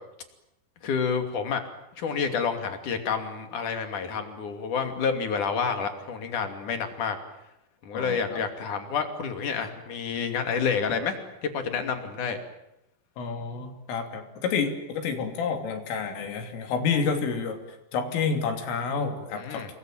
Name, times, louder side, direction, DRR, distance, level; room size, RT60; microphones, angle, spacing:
voice 1, 0.8-1.6 2.0-7.2 7.8-11.2 11.4-12.4 19.3-19.7, left 6 dB, 45° left, 6 dB, 3.6 m, -29 dB
voice 2, 7.9-8.4 13.2-17.6 17.9-19.7, left 5 dB, 75° left, 5 dB, 5.6 m, -29 dB
29.0 x 22.0 x 9.1 m, 0.86 s
omnidirectional pair, 5.9 m